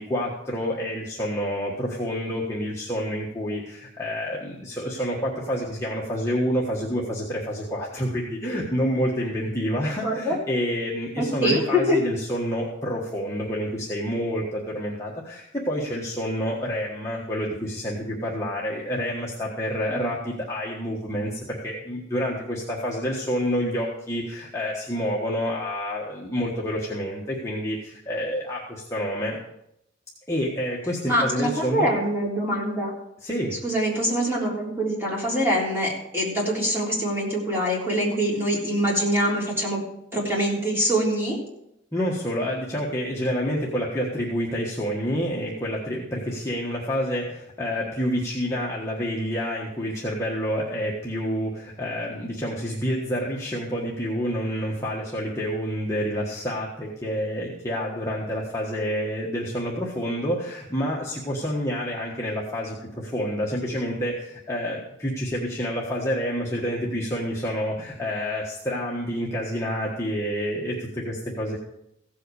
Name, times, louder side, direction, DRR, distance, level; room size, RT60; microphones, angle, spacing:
voice 1, 0.0-29.4 30.3-31.9 33.2-33.6 41.9-71.6, equal, 15° left, -4 dB, 1.4 m, -28 dB
voice 2, 10.0-10.4 11.2-12.0 19.9-20.1 31.1-32.9 33.6-39.8 40.1-41.4, equal, 10° right, -4 dB, 3.6 m, -24 dB
16.0 x 7.8 x 4.8 m, 0.79 s
head